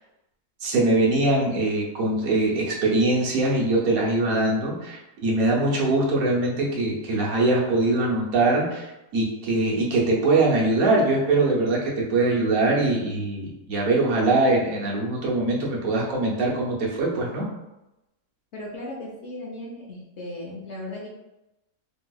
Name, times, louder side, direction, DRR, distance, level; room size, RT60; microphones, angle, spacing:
voice 1, 0.6-17.4, right 2 dB, 70° right, -4 dB, 1.3 m, -22 dB
voice 2, 18.5-21.1, left 1 dB, 60° left, -2 dB, 0.8 m, -36 dB
3.8 x 2.7 x 2.2 m, 0.94 s
omnidirectional pair, 1.6 m